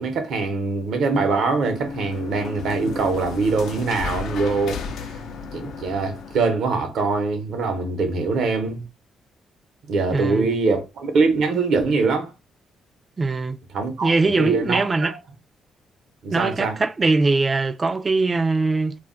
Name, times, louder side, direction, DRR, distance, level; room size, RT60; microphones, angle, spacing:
voice 1, 0.0-4.8 5.5-8.8 9.9-12.3 13.7-15.2 16.2-16.8, right 4 dB, 70° right, 0.8 m, -23 dB
sound 1, 1.1-6.7, left 5 dB, 80° left, 0.4 m, -34 dB
voice 2, 10.1-10.5 13.2-13.6 14.0-15.2 16.3-18.9, right 3 dB, 30° right, 0.3 m, -21 dB
2.4 x 2.1 x 3.7 m
cardioid pair, 90°, 0 cm